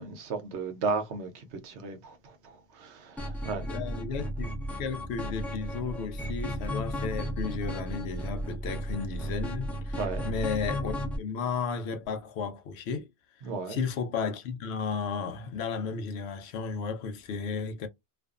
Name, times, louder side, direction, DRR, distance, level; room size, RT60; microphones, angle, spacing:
voice 1, 0.0-2.2 2.8-3.6 10.0-10.3 13.4-13.8, right 4 dB, 75° right, 1.0 m, -34 dB
sound 1, 3.2-11.2, equal, ahead, 0.5 m, -34 dB
voice 2, 3.7-13.1 13.7-17.9, left 5 dB, 75° left, 0.8 m, -34 dB
2.5 x 2.3 x 2.3 m
omnidirectional pair, 1.1 m